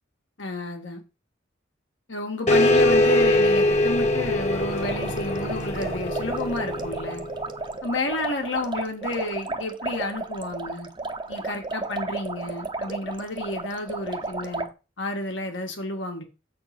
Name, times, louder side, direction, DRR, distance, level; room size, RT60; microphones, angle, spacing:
voice 1, 0.4-1.0 2.1-7.2 7.8-10.9 11.3-14.7 15.0-16.2, left 2 dB, 75° left, 3 dB, 2.0 m, -31 dB
sound 1, 2.5-7.5, left 1 dB, 40° left, 1.2 m, -22 dB
sound 2, 4.8-14.7, right 3 dB, 25° right, 0.8 m, -33 dB
7.4 x 4.4 x 6.0 m, 0.30 s
head